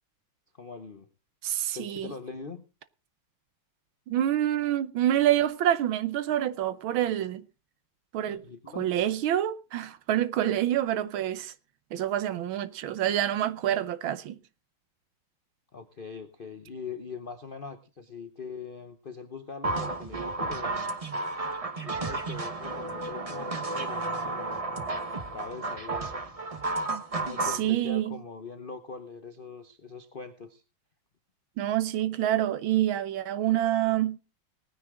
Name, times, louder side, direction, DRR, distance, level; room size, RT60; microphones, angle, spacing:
voice 1, 0.6-1.1 1.7-2.6 8.3-8.9 15.7-20.9 21.8-24.8 25.3-26.1 27.2-30.6, left 5 dB, 55° left, 0.6 m, -42 dB
voice 2, 1.4-2.1 4.1-7.4 8.1-8.4 8.8-11.5 11.9-14.4 27.4-28.2 31.6-34.2, right 12 dB, 70° right, 1.5 m, -27 dB
sound 1, 19.6-27.6, right 2 dB, 35° right, 0.5 m, -32 dB
19.0 x 9.8 x 3.7 m
omnidirectional pair, 2.4 m